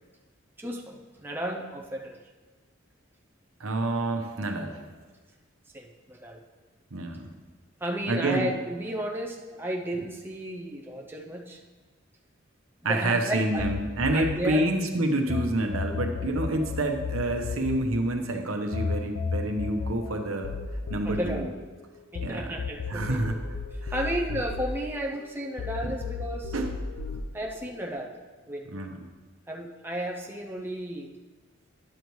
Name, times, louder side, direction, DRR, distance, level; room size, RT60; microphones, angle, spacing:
voice 1, 0.6-2.2 5.7-6.4 7.8-11.6 12.8-13.7 14.1-14.6 21.0-21.5 22.1-23.3 23.7-26.5 27.3-28.2 28.5-28.7 29.5-31.1, right 1 dB, 10° right, 0 dB, 0.5 m, -33 dB
voice 2, 3.6-4.8 6.9-7.3 8.1-8.5 12.8-20.5 20.9-21.5 22.2-22.5 22.9-23.4 23.8-23.9 25.8-25.9 26.5-26.7 27.1-27.2 28.7-29.0, right 1 dB, 85° right, 4 dB, 0.9 m, -28 dB
sound 1, 13.6-15.4 15.7-22.3 22.6-25.3 25.6-27.2, left 5 dB, 90° left, 0.6 m, -33 dB
10.5 x 6.9 x 3.1 m, 1.3 s
head